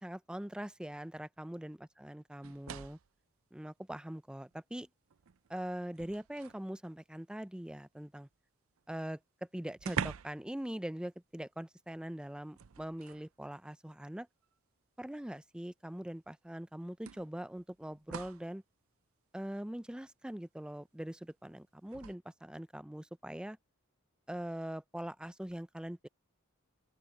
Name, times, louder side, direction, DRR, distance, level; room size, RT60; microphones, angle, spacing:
voice 1, 0.0-3.0 3.5-4.9 5.5-8.3 8.9-9.2 9.5-14.3 15.0-18.6 19.3-23.6 24.3-26.1, right 1 dB, 5° right, 0.4 m, -42 dB
sound 1, 2.4-3.2 4.5-4.6 5.1-6.7 8.8-8.9 9.1-9.2 9.8-10.5 10.8-11.0 12.5-13.3 14.4-14.5 16.1-16.2 17.0-18.5 21.9-22.1, right 7 dB, 70° right, 0.5 m, -43 dB
open air
head